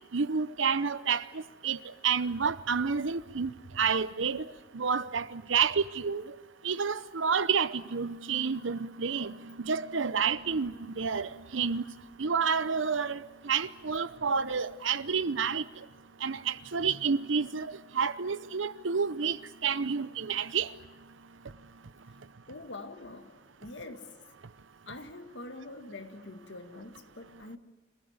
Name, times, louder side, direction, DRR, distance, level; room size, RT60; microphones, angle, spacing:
voice 1, 0.1-1.2 1.6-1.8 2.0-4.4 4.7-6.2 6.6-9.4 9.6-11.8 12.2-15.6 16.2-19.4 19.6-20.7, right 6 dB, 85° right, 0.8 m, -29 dB
voice 2, 22.5-24.1 24.9-27.6, left 2 dB, 65° left, 1.9 m, -44 dB
27.0 x 16.0 x 9.6 m
head